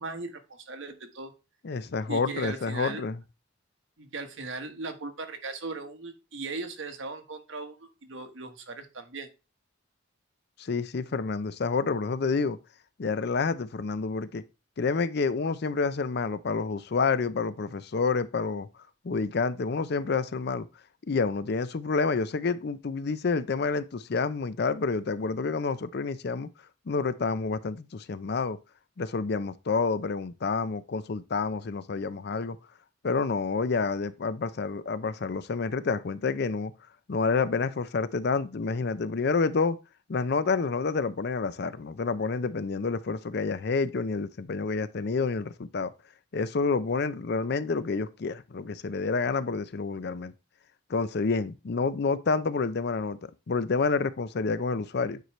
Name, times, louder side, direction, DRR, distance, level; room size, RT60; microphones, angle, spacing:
voice 1, 0.0-1.3 2.1-3.0 4.0-9.3, right 3 dB, 80° right, 1.3 m, -38 dB
voice 2, 1.6-3.2 10.6-12.6 13.0-14.4 14.8-18.7 19.0-20.7 21.1-26.5 26.9-28.6 29.0-32.6 33.0-36.7 37.1-39.8 40.1-45.9 46.3-50.3 50.9-55.2, left 4 dB, 55° left, 0.5 m, -28 dB
9.2 x 4.7 x 3.1 m
head